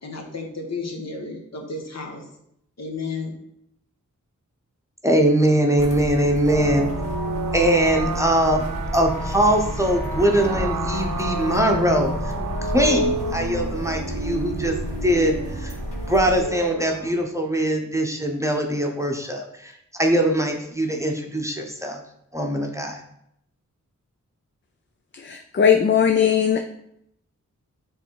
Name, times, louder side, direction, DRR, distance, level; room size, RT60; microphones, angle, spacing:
voice 1, 0.0-2.3 2.8-3.3, left 3 dB, 55° left, 1 dB, 1.3 m, -32 dB
voice 2, 5.0-6.9 7.5-8.6 8.9-12.3 12.6-15.7 16.1-19.7 20.0-22.0 22.3-23.0, right 1 dB, 10° right, 1 dB, 0.9 m, -22 dB
sound 1, 5.8-16.4, equal, 20° left, 2.0 m, -32 dB
sound 2, 6.5-17.1, right 1 dB, 70° right, 0.7 m, -30 dB
voice 3, 25.1-26.7, left 8 dB, 40° left, 5 dB, 0.4 m, -19 dB
6.8 x 3.3 x 4.6 m, 0.76 s
wide cardioid pair, 75°, 31 cm